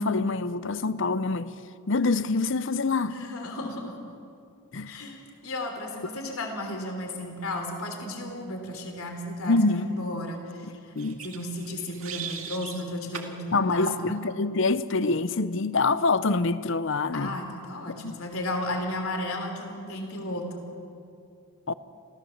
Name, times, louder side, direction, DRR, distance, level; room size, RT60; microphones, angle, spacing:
voice 1, 0.0-1.5 1.9-3.2 4.7-5.0 9.5-9.9 10.6-11.2 13.5-17.3 18.0-18.2 21.7-21.8, left 3 dB, 55° left, 0.7 m, -25 dB
voice 2, 3.0-4.0 4.9-10.9 11.2-14.1 17.1-20.6, left 1 dB, 75° left, 3.3 m, -34 dB
sound 1, 11.0-12.8 13.1-13.3 13.9-14.1, right 7 dB, 70° right, 2.1 m, -38 dB
26.0 x 16.0 x 7.2 m
head